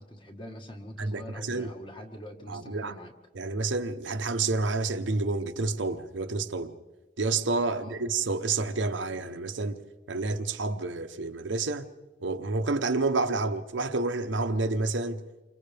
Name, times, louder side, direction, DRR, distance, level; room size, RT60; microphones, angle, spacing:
voice 1, 0.0-3.1 7.7-8.1, left 1 dB, 25° left, 1.6 m, -44 dB
voice 2, 1.0-1.7 2.5-2.9 3.3-6.7 7.2-9.8 10.1-11.9 12.2-15.2, right 3 dB, 85° right, 0.9 m, -29 dB
29.0 x 25.5 x 3.4 m
head